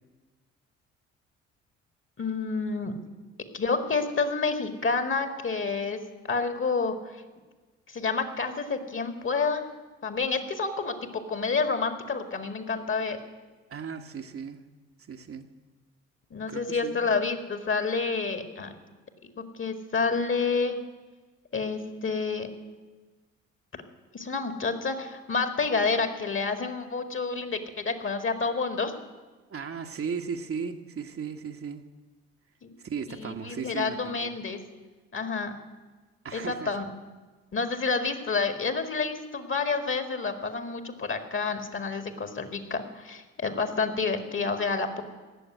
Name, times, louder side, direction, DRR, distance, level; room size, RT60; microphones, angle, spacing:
voice 1, 2.2-2.9 3.5-6.0 6.3-7.1 7.9-9.7 10.0-13.2 16.3-18.7 19.2-20.8 21.5-22.5 23.7-23.8 24.1-28.9 32.6-32.7 33.1-34.6 35.1-35.5 36.3-36.9 37.5-45.0, left 4 dB, 35° left, 8 dB, 2.1 m, -29 dB
voice 2, 13.7-14.6 15.1-15.5 16.5-17.2 29.5-31.8 32.8-34.3 36.2-36.7, right 6 dB, 40° right, 4 dB, 1.3 m, -36 dB
17.5 x 7.0 x 9.6 m, 1.3 s
hypercardioid pair, 55°, 33 cm